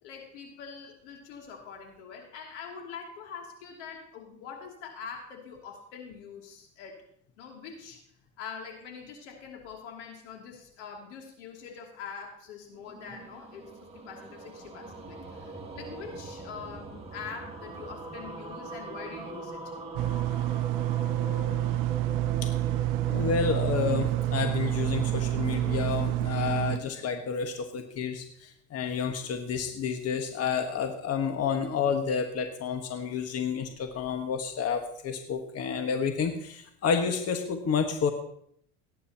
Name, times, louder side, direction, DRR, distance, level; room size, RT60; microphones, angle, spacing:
voice 1, 0.0-7.0 7.4-8.0 8.4-19.9, left 6 dB, 85° left, 1 dB, 2.8 m, -44 dB
sound 1, 12.8-27.2, right 3 dB, 15° right, 2.3 m, -41 dB
sound 2, 20.0-26.8, right 15 dB, 65° right, 0.6 m, -28 dB
voice 2, 23.1-38.1, left 6 dB, 45° left, 5 dB, 1.5 m, -30 dB
18.0 x 9.5 x 2.9 m, 0.68 s
hypercardioid pair, 80°, 35 cm